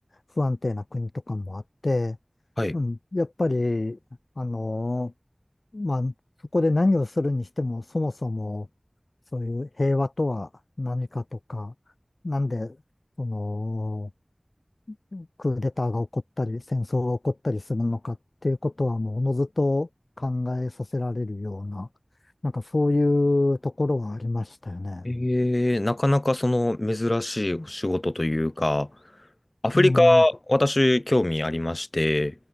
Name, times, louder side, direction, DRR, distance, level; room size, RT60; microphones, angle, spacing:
voice 1, 0.3-2.2 2.7-4.0 4.4-5.1 5.7-6.1 6.5-8.7 9.3-10.5 10.8-11.7 12.2-12.8 13.2-14.1 14.9-18.2 18.4-19.9 20.2-21.9 22.4-25.1 29.7-30.2, left 2 dB, 80° left, 1.6 m, -26 dB
voice 2, 25.0-28.9 29.6-32.3, left 1 dB, 45° left, 3.3 m, -22 dB
wide cardioid pair, 40°, 0 cm